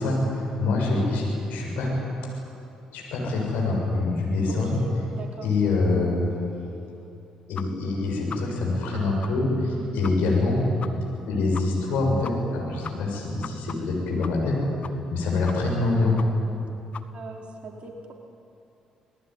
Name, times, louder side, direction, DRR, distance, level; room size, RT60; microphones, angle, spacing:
voice 1, 0.0-1.9 2.9-4.7 5.4-6.2 7.5-10.6 11.3-14.7 15.1-16.2, left 3 dB, 65° left, -1 dB, 6.9 m, -25 dB
voice 2, 4.5-5.6 9.6-10.2 17.1-18.1, right 2 dB, 45° right, 0 dB, 4.7 m, -40 dB
sound 1, 7.5-7.6 7.9-8.0 8.3-8.4 8.8-8.9 9.2-9.3 9.6-9.7 10.0-10.1 10.4-10.5 10.8-10.9 11.1-11.2 11.5-11.6 11.9-12.0 12.2-12.6 12.8-14.5 14.8-15.2 15.4-15.8 16.2-16.3 16.5-16.6 16.9-17.0, left 7 dB, 45° left, 1.4 m, -38 dB
26.5 x 19.5 x 9.9 m, 2.8 s
figure-of-eight pair, 45°, 3 cm